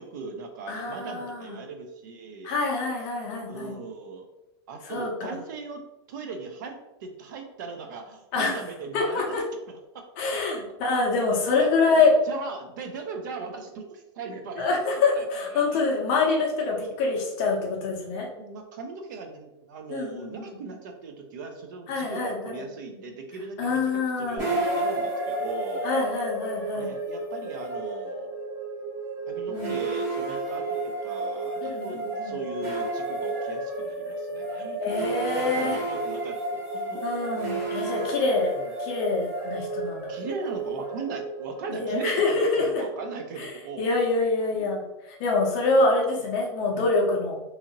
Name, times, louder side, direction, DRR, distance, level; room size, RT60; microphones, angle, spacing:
voice 1, 0.0-2.5 3.5-4.2 4.7-9.2 9.7-10.0 11.3-11.7 12.3-15.9 18.4-23.8 24.2-25.9 26.7-28.4 29.3-34.8 35.4-37.1 38.6-38.7 40.1-43.9 44.5-44.7 45.8-46.3 46.7-46.8, right 4 dB, 45° right, 4 dB, 0.4 m, -38 dB
voice 2, 0.7-1.6 2.4-3.8 4.8-5.4 8.3-8.6 8.9-9.4 10.2-12.2 14.6-18.3 19.9-20.5 21.9-22.7 23.6-24.6 25.8-26.9 29.5-29.7 31.6-32.4 34.8-35.8 37.0-40.1 41.7-42.8 43.4-43.5 43.8-44.8 45.1-47.4, left 3 dB, 30° left, -1 dB, 0.6 m, -26 dB
sound 1, 24.4-43.5, right 2 dB, 30° right, 1.0 m, -32 dB
2.7 x 2.5 x 2.8 m, 0.94 s
supercardioid pair, 175°, 14 cm